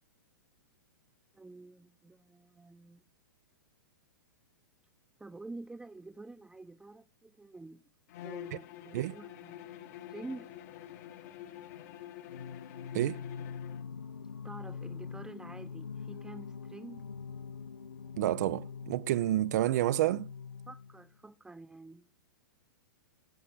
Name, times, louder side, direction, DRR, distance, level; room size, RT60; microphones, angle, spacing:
voice 1, 1.3-3.0 5.2-7.8 8.2-10.5 14.4-17.0 20.7-22.1, right 2 dB, 5° right, 0.8 m, -48 dB
Bowed string instrument, 8.1-13.9, left 12 dB, 50° left, 1.3 m, -47 dB
Singing, 12.2-21.2, left 6 dB, 85° left, 0.5 m, -44 dB
voice 2, 18.2-20.3, right 14 dB, 50° right, 0.5 m, -29 dB
11.5 x 5.2 x 6.2 m
figure-of-eight pair, 110°, 11 cm